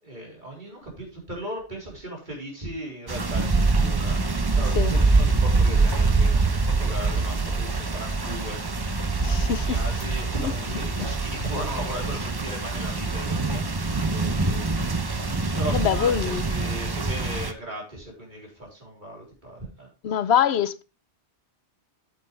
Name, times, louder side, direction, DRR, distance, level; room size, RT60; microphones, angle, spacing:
voice 1, 0.0-4.2 4.5-8.6 9.4-20.3, right 1 dB, 45° right, 4.0 m, -37 dB
sound 1, 3.1-17.5, right 3 dB, 25° right, 0.7 m, -24 dB
voice 2, 9.2-9.8 10.4-10.5 15.7-16.4 20.0-20.8, left 9 dB, 70° left, 0.9 m, -24 dB
9.4 x 7.9 x 3.3 m
omnidirectional pair, 1.2 m